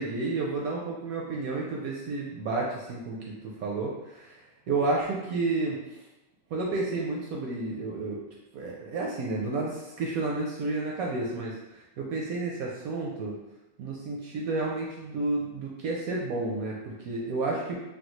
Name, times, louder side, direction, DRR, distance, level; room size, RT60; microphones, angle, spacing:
voice 1, 0.0-6.0 6.5-8.2 8.5-13.3 13.8-17.8, right 3 dB, 70° right, -2 dB, 0.9 m, -31 dB
3.4 x 2.2 x 3.0 m, 0.98 s
omnidirectional pair, 1.8 m